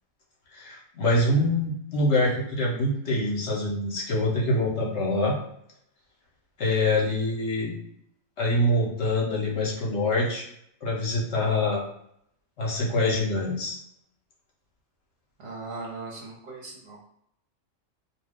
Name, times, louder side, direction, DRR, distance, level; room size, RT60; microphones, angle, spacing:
voice 1, 0.5-5.4 6.6-7.8 8.4-10.5 10.8-11.8 12.6-13.8, left 1 dB, 65° left, -3 dB, 1.0 m, -25 dB
voice 2, 15.4-17.0, right 3 dB, 60° right, -3 dB, 0.9 m, -38 dB
2.4 x 2.3 x 3.5 m, 0.73 s
omnidirectional pair, 1.3 m